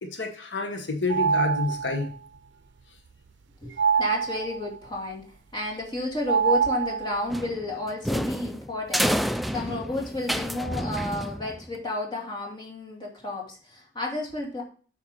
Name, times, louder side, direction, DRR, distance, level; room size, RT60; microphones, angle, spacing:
voice 1, 0.0-2.1, left 3 dB, 90° left, 4 dB, 1.4 m, -28 dB
sound 1, 1.1-2.1 3.8-4.8 6.3-7.4, right 6 dB, 80° right, 0.5 m, -25 dB
voice 2, 3.6-14.6, left 2 dB, 25° left, -1 dB, 2.7 m, -32 dB
sound 2, 7.3-11.8, equal, ahead, 0.3 m, -29 dB
8.8 x 5.8 x 5.1 m, 0.42 s
head